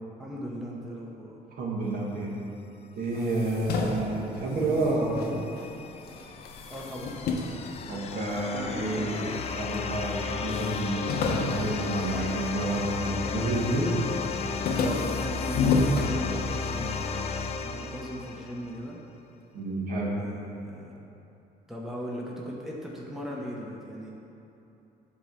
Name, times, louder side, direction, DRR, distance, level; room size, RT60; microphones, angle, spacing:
voice 1, 0.2-1.4 3.1-3.7 6.7-7.3 8.5-9.3 14.7-17.1 17.6-19.0 20.2-20.9 21.7-24.1, equal, ahead, -3 dB, 0.8 m, -38 dB
voice 2, 1.6-2.3 3.0-5.4 7.9-9.3 9.5-13.9 19.5-20.2, right 2 dB, 60° right, -3 dB, 1.5 m, -29 dB
sound 1, 3.1-5.7 6.1-8.6 9.2-9.9 10.1-10.2 10.5-13.1 13.5-13.9 14.2-16.8, left 3 dB, 65° left, 0.8 m, -31 dB
sound 2, 5.0-18.8, left 5 dB, 40° left, 0.5 m, -34 dB
8.2 x 3.1 x 6.4 m, 2.8 s
cardioid pair, 110°, 17 cm